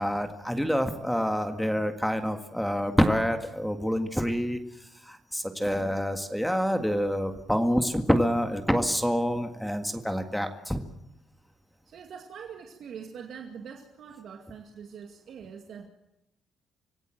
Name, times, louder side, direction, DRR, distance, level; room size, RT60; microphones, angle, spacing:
voice 1, 0.0-4.6 5.1-10.8, equal, ahead, 6 dB, 1.8 m, -27 dB
voice 2, 11.9-15.9, right 7 dB, 65° right, 2 dB, 2.2 m, -43 dB
26.0 x 16.0 x 7.7 m, 0.88 s
cardioid pair, 90°, 0 cm